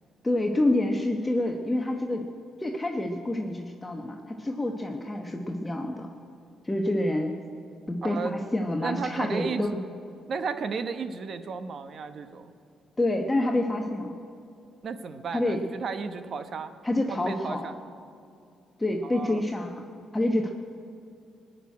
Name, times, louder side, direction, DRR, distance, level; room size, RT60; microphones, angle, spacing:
voice 1, 0.2-2.3 2.6-6.1 6.6-7.3 7.9-9.7 13.0-14.2 15.3-15.6 16.8-17.6 18.8-19.8 20.1-20.5, left 1 dB, 15° left, 2 dB, 1.0 m, -27 dB
voice 2, 8.0-8.4 8.8-9.8 10.3-12.5 14.8-16.7 17.1-17.7 19.0-19.4, right 5 dB, 55° right, 10 dB, 0.9 m, -33 dB
19.0 x 6.5 x 9.4 m, 2.4 s
cardioid pair, 90°, 0 cm